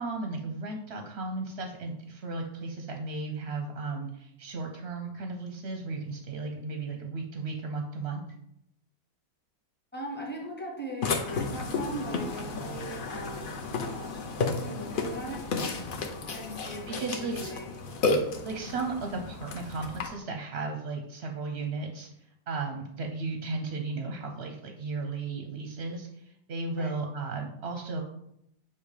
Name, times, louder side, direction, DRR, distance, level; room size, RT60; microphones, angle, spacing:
voice 1, 0.0-8.2 16.9-17.5 18.4-22.1 22.5-28.0, right 3 dB, 55° right, 3 dB, 0.7 m, -35 dB
voice 2, 9.9-15.8 16.3-17.7 19.1-19.2 26.8-26.9, right 1 dB, 10° left, -1 dB, 0.8 m, -40 dB
Burping eructation, 11.0-20.1, left 3 dB, 50° left, 0.6 m, -32 dB
6.9 x 2.8 x 4.9 m, 0.76 s
omnidirectional pair, 1.7 m